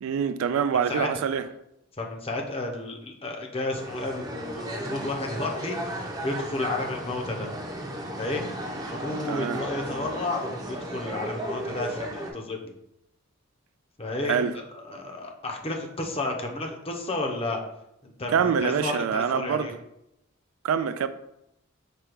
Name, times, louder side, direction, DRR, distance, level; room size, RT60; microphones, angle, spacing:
voice 1, 0.0-1.5 9.3-9.6 14.2-14.5 18.3-19.7 20.6-21.1, right 7 dB, 80° right, 0.3 m, -25 dB
voice 2, 0.9-1.4 2.0-7.5 8.2-8.4 8.9-12.6 14.0-17.6 18.0-19.7, left 2 dB, 30° left, 0.7 m, -32 dB
sound 1, 3.7-12.3, equal, 20° right, 0.6 m, -35 dB
4.9 x 2.3 x 4.5 m
head